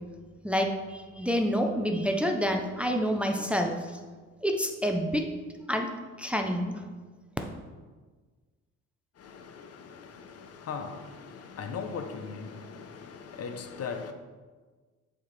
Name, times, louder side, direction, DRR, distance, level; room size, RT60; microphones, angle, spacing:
voice 1, 0.4-3.8 4.4-5.2 5.7-5.9 6.2-6.8, equal, 5° right, 0.5 m, -28 dB
voice 2, 10.7-11.0 11.6-12.5 13.4-14.1, left 5 dB, 55° left, 0.6 m, -36 dB
7.0 x 4.3 x 3.2 m
cardioid pair, 90°, 30 cm